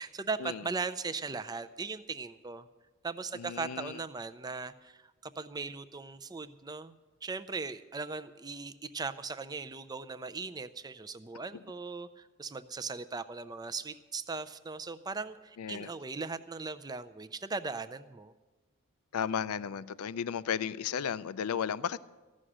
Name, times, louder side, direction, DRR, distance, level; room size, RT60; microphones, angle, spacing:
voice 1, 0.0-2.7 3.0-7.0 7.2-18.3, right 4 dB, 20° right, 11 dB, 0.5 m, -38 dB
voice 2, 3.3-4.0 15.6-15.9 19.1-22.0, left 8 dB, 90° left, 17 dB, 0.4 m, -34 dB
15.0 x 6.3 x 10.0 m, 1.2 s
head